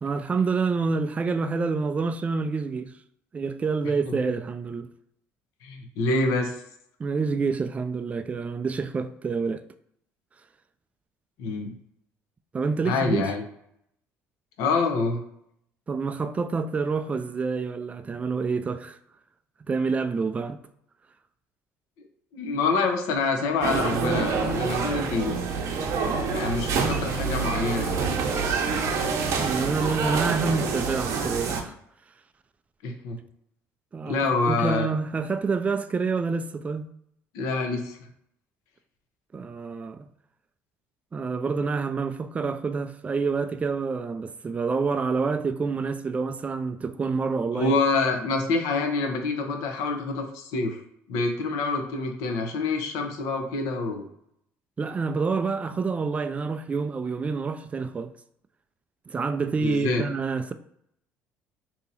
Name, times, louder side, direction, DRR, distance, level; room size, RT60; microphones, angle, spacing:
voice 1, 0.0-2.9 3.3-4.9 7.0-9.6 12.5-13.2 15.9-19.0 19.7-20.6 29.4-31.7 33.9-36.9 39.3-40.1 41.1-47.8 54.8-58.1 59.1-60.5, right 4 dB, 25° right, 0.3 m, -27 dB
voice 2, 5.6-6.5 11.4-11.7 12.8-13.4 14.6-15.2 22.3-25.4 26.3-28.0 32.8-33.2 34.1-34.9 37.3-38.0 47.5-50.8 51.1-54.1 59.6-60.0, left 3 dB, 80° left, 0.7 m, -26 dB
sound 1, 23.6-31.6, right 5 dB, 65° right, 0.7 m, -27 dB
2.8 x 2.8 x 3.9 m
supercardioid pair, 85°, 6 cm